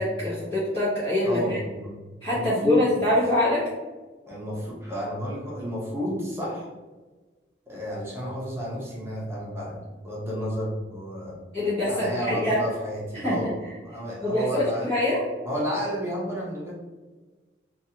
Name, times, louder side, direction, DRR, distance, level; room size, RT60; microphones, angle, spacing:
voice 1, 0.0-1.6 2.2-3.7 11.5-12.6 13.1-13.4 14.2-15.3, left 1 dB, 30° left, -12 dB, 1.0 m, -24 dB
voice 2, 1.2-1.9 2.3-3.0 4.3-6.7 7.7-11.4 11.9-14.9 15.4-16.7, equal, 15° right, -5 dB, 0.8 m, -31 dB
3.0 x 2.5 x 2.8 m, 1.3 s
head